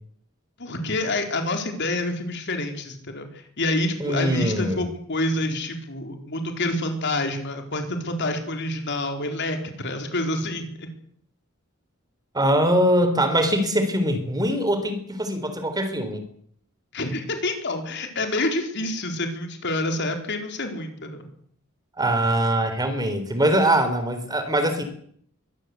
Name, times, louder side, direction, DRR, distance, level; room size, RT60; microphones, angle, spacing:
voice 1, 0.6-10.9 16.9-21.2, left 2 dB, 55° left, 5 dB, 4.5 m, -28 dB
voice 2, 4.0-4.9 12.3-16.2 22.0-24.8, right 1 dB, 20° right, 9 dB, 3.9 m, -22 dB
23.5 x 18.0 x 8.2 m, 0.63 s
head